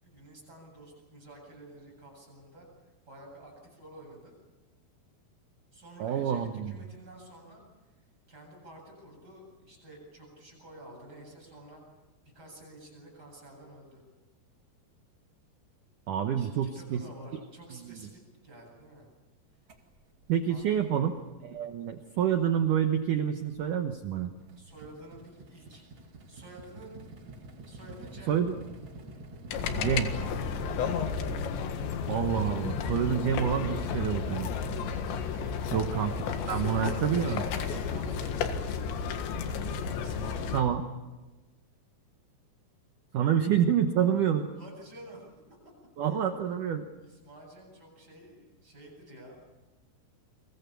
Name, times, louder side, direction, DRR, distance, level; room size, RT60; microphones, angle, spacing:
voice 1, 0.0-2.7 3.0-4.3 5.7-7.6 8.0-11.8 12.3-14.0 16.4-19.1 20.5-21.1 24.6-25.8 26.3-27.0 27.7-28.4 30.5-30.9 35.3-35.7 36.4-38.6 40.0-40.7 44.6-45.3 46.0-46.3 47.0-49.5, right 1 dB, 20° right, -1 dB, 8.5 m, -50 dB
voice 2, 6.0-6.7 16.1-17.0 17.9-18.0 20.3-21.1 21.4-24.3 28.3-28.6 29.7-30.1 32.1-34.5 35.7-37.4 40.5-40.8 43.1-44.5 46.0-46.9, right 9 dB, 70° right, 6 dB, 2.1 m, -28 dB
sound 1, 19.7-21.6 21.9-35.2, right 2 dB, 40° right, 2.0 m, -51 dB
sound 2, 29.5-40.6, left 6 dB, 85° left, 4.0 m, -32 dB
30.0 x 24.0 x 7.0 m, 1.2 s
omnidirectional pair, 5.0 m